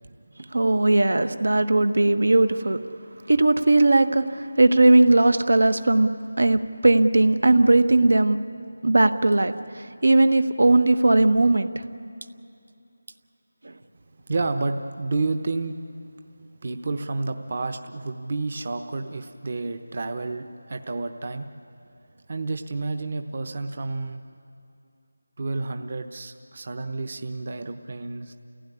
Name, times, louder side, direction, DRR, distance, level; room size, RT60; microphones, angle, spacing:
voice 1, 0.5-2.8 3.3-8.4 8.8-11.8 13.6-13.7, right 2 dB, 80° right, 10 dB, 1.2 m, -19 dB
voice 2, 14.3-15.8 16.1-16.2 16.6-21.5 22.3-24.2 25.4-28.3, right 3 dB, 40° right, 7 dB, 1.0 m, -30 dB
29.0 x 16.5 x 9.9 m, 2.5 s
figure-of-eight pair, 175°, 0 cm